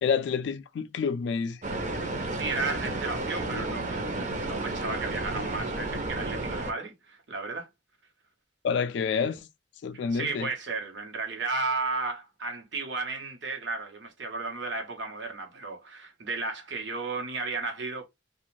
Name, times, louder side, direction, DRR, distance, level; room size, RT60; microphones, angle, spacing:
voice 1, 0.0-1.6 8.6-9.4 9.8-10.5, left 6 dB, 70° left, 0.3 m, -28 dB
sound 1, 1.6-6.7, right 2 dB, 45° right, 0.7 m, -32 dB
voice 2, 2.2-7.7 10.1-18.0, right 3 dB, 85° right, 1.0 m, -34 dB
2.5 x 2.4 x 3.1 m
head